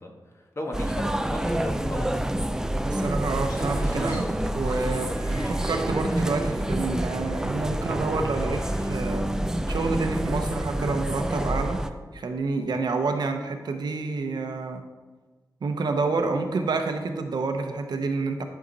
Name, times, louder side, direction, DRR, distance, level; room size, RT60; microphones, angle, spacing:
voice 1, 0.0-2.3, left 1 dB, 40° left, 1 dB, 1.5 m, -36 dB
sound 1, 0.7-11.9, right 1 dB, 10° right, 0.4 m, -27 dB
voice 2, 2.8-9.3 9.7-14.8 15.6-18.4, right 3 dB, 75° right, 5 dB, 0.9 m, -28 dB
sound 2, 3.4-9.0, left 1 dB, 70° left, 1.9 m, -49 dB
11.5 x 6.5 x 4.1 m, 1.3 s
wide cardioid pair, 145°, 7 cm